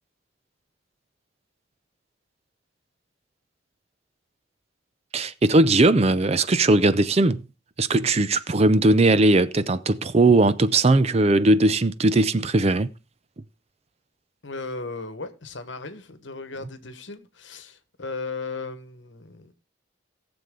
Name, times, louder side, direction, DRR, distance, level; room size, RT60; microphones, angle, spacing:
voice 1, 5.1-7.5 7.8-12.9, right 2 dB, 30° right, 0.5 m, -19 dB
voice 2, 14.4-19.5, left 3 dB, 70° left, 1.4 m, -36 dB
18.0 x 7.0 x 3.8 m
head